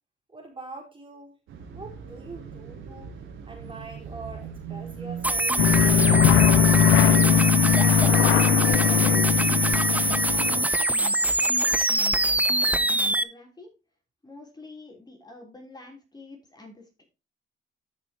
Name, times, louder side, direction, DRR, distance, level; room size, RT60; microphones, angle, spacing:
voice 1, 0.3-1.4 1.7-3.1 3.4-6.5, right 3 dB, 25° right, 0 dB, 4.3 m, -43 dB
sound 1, 1.5-6.7, right 6 dB, 80° right, 3.2 m, -40 dB
sound 2, 5.2-13.2, right 2 dB, 5° right, 0.8 m, -23 dB
sound 3, 5.6-10.6, left 9 dB, 85° left, 0.6 m, -20 dB
voice 2, 8.8-9.9 10.2-11.8 12.1-13.7 14.2-17.0, left 2 dB, 20° left, 1 dB, 3.6 m, -46 dB
13.5 x 6.1 x 2.9 m, 0.29 s
cardioid pair, 90°, 20 cm